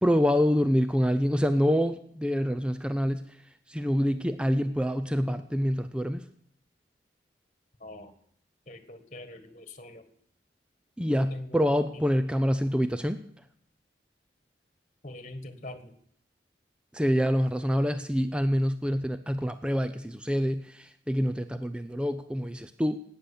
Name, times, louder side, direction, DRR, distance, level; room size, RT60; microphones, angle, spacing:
voice 1, 0.0-3.2 3.7-6.2 11.0-13.2 16.9-23.0, equal, 5° right, 10 dB, 0.5 m, -26 dB
voice 2, 7.8-8.1 8.7-10.0 11.1-11.7 15.0-15.9, left 1 dB, 35° left, 10 dB, 1.5 m, -43 dB
18.5 x 9.3 x 7.1 m, 0.66 s
head